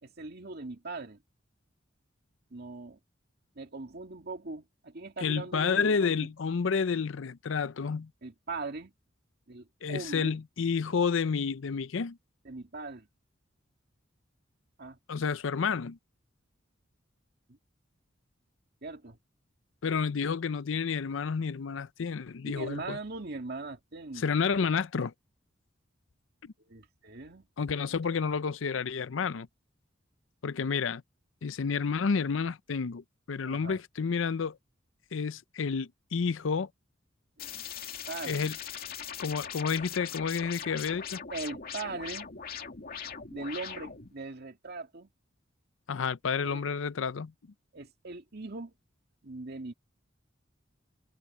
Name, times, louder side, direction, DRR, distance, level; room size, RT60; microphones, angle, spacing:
voice 1, 0.0-1.2 2.5-3.0 3.6-6.1 8.2-8.9 9.5-10.4 12.4-13.1 14.8-15.0 17.5-17.6 18.8-19.2 22.5-24.3 26.7-27.5 33.5-33.8 37.4-37.7 38.1-38.5 41.3-42.3 43.3-45.1 46.4-46.7 47.7-48.7 49.2-49.7, right 3 dB, 55° right, 2.2 m, -40 dB
voice 2, 5.2-8.1 9.8-12.2 15.1-16.0 19.8-23.0 24.2-25.1 26.4-26.5 27.6-29.5 30.4-31.0 31.4-34.6 35.1-36.7 38.2-38.5 39.2-41.2 45.9-47.3, left 5 dB, 75° left, 0.5 m, -30 dB
sound 1, 37.4-44.1, left 8 dB, 50° left, 2.5 m, -40 dB
head